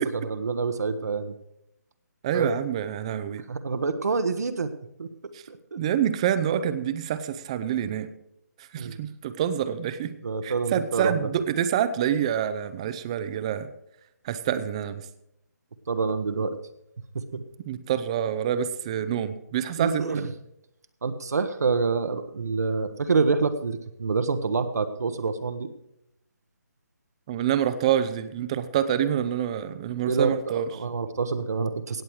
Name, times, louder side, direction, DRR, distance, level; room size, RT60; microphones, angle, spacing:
voice 1, 0.0-1.3 2.3-2.5 3.5-4.7 5.0-5.1 5.5-5.8 8.7-9.0 10.2-11.2 15.9-16.6 17.1-17.4 19.8-20.3 21.0-25.7 30.1-30.3 30.7-32.0, right 4 dB, 65° right, 8 dB, 1.1 m, -27 dB
voice 2, 2.2-3.4 5.3-5.4 5.8-8.1 8.7-10.1 10.4-13.7 14.2-15.0 17.6-20.0 27.3-30.7, right 9 dB, 20° right, 13 dB, 0.6 m, -27 dB
17.0 x 7.9 x 4.7 m, 0.80 s
hypercardioid pair, 165°, 9 cm